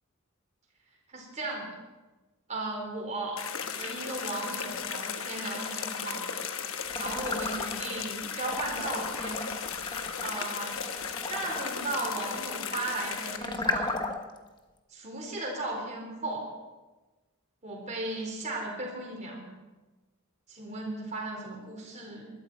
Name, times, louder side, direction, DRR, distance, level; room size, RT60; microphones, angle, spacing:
voice 1, 1.1-1.7 2.5-3.4 3.7-6.2 7.0-9.5 10.2-10.9 11.3-14.0 14.9-16.5 17.6-19.5 20.5-22.3, right 2 dB, 35° right, -1 dB, 4.4 m, -36 dB
sound 1, 3.4-13.4, left 7 dB, 65° left, 1.1 m, -36 dB
sound 2, 6.9-8.0 8.4-14.4, left 3 dB, 20° left, 1.1 m, -36 dB
20.0 x 12.5 x 4.6 m, 1.2 s
head